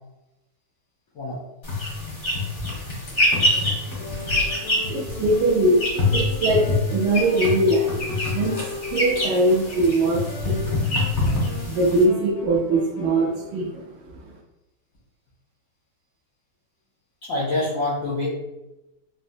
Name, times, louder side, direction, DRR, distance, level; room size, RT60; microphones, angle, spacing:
sound 1, 1.6-12.0, left 2 dB, 50° left, 0.6 m, -25 dB
voice 1, 3.1-10.7 11.4-14.3, right 1 dB, 85° right, 1 dB, 0.9 m, -23 dB
Wind instrument woodwind instrument, 4.0-13.6, left 3 dB, 75° left, 1.3 m, -39 dB
voice 2, 17.3-18.3, left 2 dB, 90° left, -8 dB, 0.7 m, -25 dB
4.2 x 2.1 x 2.6 m, 0.94 s
omnidirectional pair, 2.4 m